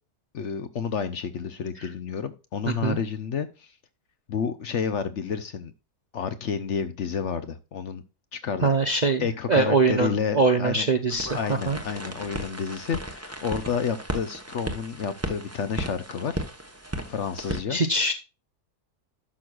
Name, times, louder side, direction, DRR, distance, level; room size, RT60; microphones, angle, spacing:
voice 1, 0.3-3.7 4.3-5.7 6.1-8.0 8.3-8.7 9.2-10.9 11.3-16.4 17.1-17.8, left 6 dB, 60° left, 0.9 m, -30 dB
voice 2, 2.6-3.0 8.6-11.8 17.7-18.1, right 3 dB, 45° right, 0.6 m, -23 dB
sound 1, 11.1-17.6, right 1 dB, 10° right, 0.9 m, -35 dB
11.5 x 6.2 x 2.4 m
omnidirectional pair, 1.6 m